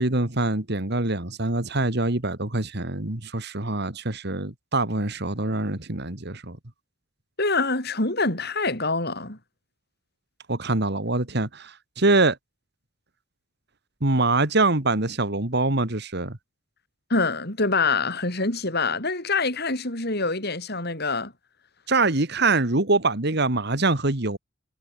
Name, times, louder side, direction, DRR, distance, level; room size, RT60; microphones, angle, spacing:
voice 1, 0.0-6.6 10.5-12.4 14.0-16.4 21.9-24.4, right 2 dB, 55° right, 2.3 m, -24 dB
voice 2, 7.4-9.4 17.1-21.3, left 3 dB, 55° left, 7.9 m, -25 dB
head